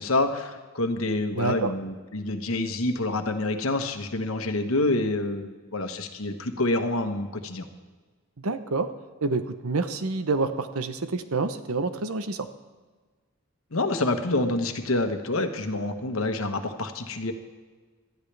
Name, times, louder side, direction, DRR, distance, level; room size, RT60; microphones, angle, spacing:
voice 1, 0.0-7.7 13.7-17.3, left 2 dB, 75° left, 6 dB, 1.2 m, -27 dB
voice 2, 1.3-1.7 8.4-8.9 9.2-12.5, right 3 dB, 90° right, 10 dB, 0.9 m, -28 dB
19.0 x 13.0 x 3.4 m, 1.4 s
head